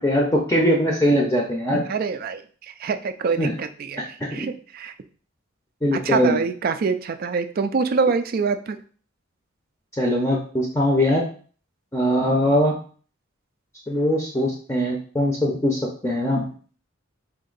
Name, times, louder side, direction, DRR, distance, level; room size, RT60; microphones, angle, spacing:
voice 1, 0.0-1.8 3.4-3.5 4.3-4.5 5.8-6.4 10.0-11.2 11.9-12.8 13.9-16.4, equal, 15° left, -1 dB, 0.6 m, -21 dB
voice 2, 1.9-4.9 5.9-8.8, right 5 dB, 45° right, 10 dB, 0.3 m, -25 dB
4.2 x 2.7 x 3.9 m, 0.42 s
head